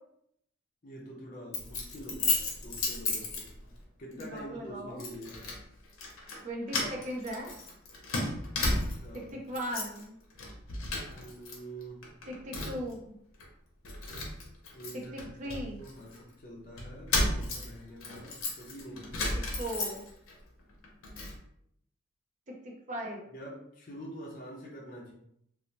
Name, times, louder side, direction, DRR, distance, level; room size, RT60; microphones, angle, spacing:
voice 1, 0.8-3.5 4.0-5.4 8.6-9.3 11.1-12.1 14.7-19.4 23.3-25.1, right 1 dB, 40° left, -3 dB, 0.5 m, -46 dB
Keys jangling, 1.5-3.8 4.2-4.4 5.0-5.6 5.9-6.4 6.7-9.2 9.5-10.0 10.3-11.5 11.8-12.9 13.4-13.5 13.8-16.2 16.8-20.3 20.7-21.4, left 2 dB, 80° left, 0.7 m, -34 dB
voice 2, 4.1-5.0 6.4-7.5 9.3-10.1 12.3-13.1 14.9-15.8 19.6-20.0 22.5-23.3, equal, 35° right, 0 dB, 0.5 m, -38 dB
2.6 x 2.0 x 3.1 m, 0.73 s
head